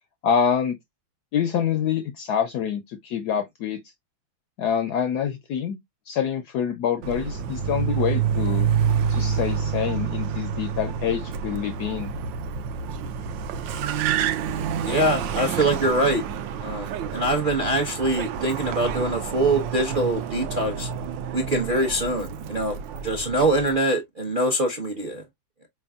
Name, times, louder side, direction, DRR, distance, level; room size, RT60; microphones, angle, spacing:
voice 1, 0.2-0.8 1.3-3.8 4.6-5.8 6.1-8.7 9.1-12.1, left 8 dB, 75° left, 0.9 m, -26 dB
Car, 7.0-23.8, right 7 dB, 75° right, 1.2 m, -28 dB
voice 2, 14.8-16.2 16.6-20.9 21.3-22.8 23.0-25.2, right 1 dB, 45° right, 0.6 m, -24 dB
4.5 x 3.4 x 2.2 m
omnidirectional pair, 2.1 m